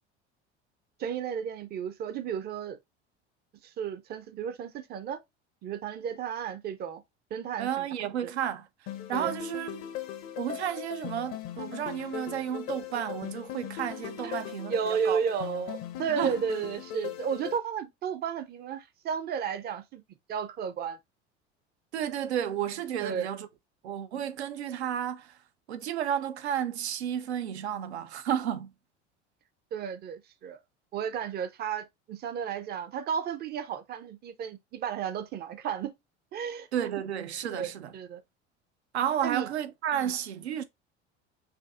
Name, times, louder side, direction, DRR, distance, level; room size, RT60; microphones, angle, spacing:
voice 1, 1.0-2.8 3.6-5.2 5.6-7.0 7.3-7.9 8.2-8.3 9.1-9.3 14.2-14.4 14.7-20.0 20.3-21.0 23.0-23.3 29.7-30.6 30.9-35.9 36.3-36.7 37.5-38.2 39.2-39.5 39.9-40.1, right 7 dB, 30° right, 0.6 m, -33 dB
voice 2, 7.6-8.7 9.1-9.8 10.4-15.2 16.2-16.4 21.9-23.5 23.8-25.3 25.7-28.7 36.7-37.9 38.9-40.6, right 9 dB, 70° right, 0.6 m, -32 dB
sound 1, 8.9-17.6, left 11 dB, 40° left, 0.6 m, -39 dB
5.1 x 2.6 x 2.3 m
figure-of-eight pair, 70°, 35 cm